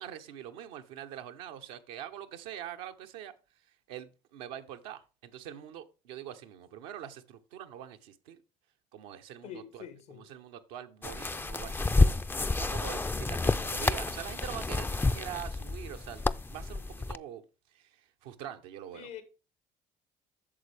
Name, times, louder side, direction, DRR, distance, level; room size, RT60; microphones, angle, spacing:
voice 1, 0.0-3.3 3.9-8.4 8.9-12.1 12.6-17.4 17.7-19.1, right 10 dB, 85° right, 0.8 m, -44 dB
voice 2, 9.4-10.3 18.9-19.2, left 9 dB, 85° left, 1.4 m, -45 dB
sound 1, 11.0-17.2, left 3 dB, 15° left, 0.3 m, -29 dB
8.5 x 6.7 x 3.3 m
supercardioid pair, 65°, 17 cm